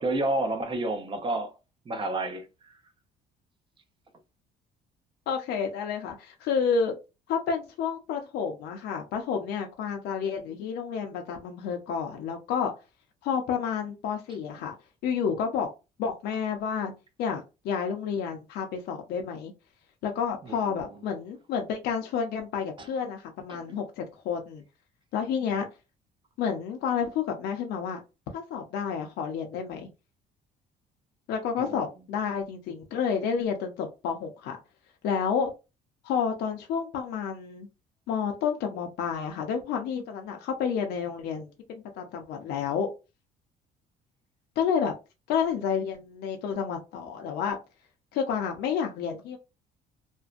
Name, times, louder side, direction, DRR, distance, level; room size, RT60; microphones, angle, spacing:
voice 1, 0.0-1.5 1.9-2.7 20.4-20.8 22.8-22.9 23.5-23.8 31.6-31.9, right 2 dB, 30° right, 0.6 m, -30 dB
voice 2, 5.3-6.9 7.3-12.7 13.2-14.7 15.0-15.7 16.0-16.9 17.2-19.5 20.0-24.6 25.1-25.7 26.4-28.0 28.3-29.9 31.3-34.6 35.0-35.5 36.0-37.7 38.1-42.9 44.6-44.9 45.3-47.6 48.1-49.4, left 6 dB, 75° left, 0.6 m, -30 dB
2.5 x 2.1 x 2.4 m
cardioid pair, 110°, 17 cm